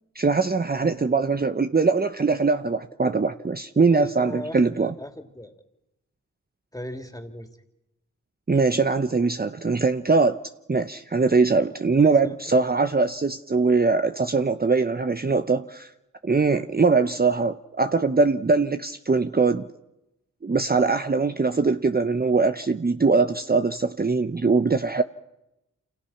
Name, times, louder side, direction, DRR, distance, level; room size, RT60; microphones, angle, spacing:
voice 1, 0.1-4.9 8.5-10.4 10.7-15.9 16.2-19.7 20.4-25.0, right 4 dB, 30° right, 9 dB, 0.9 m, -22 dB
voice 2, 3.9-5.5 6.7-7.5 12.0-12.3, left 1 dB, 10° left, 5 dB, 3.1 m, -38 dB
27.5 x 27.0 x 5.9 m, 0.92 s
cardioid pair, 45°, 32 cm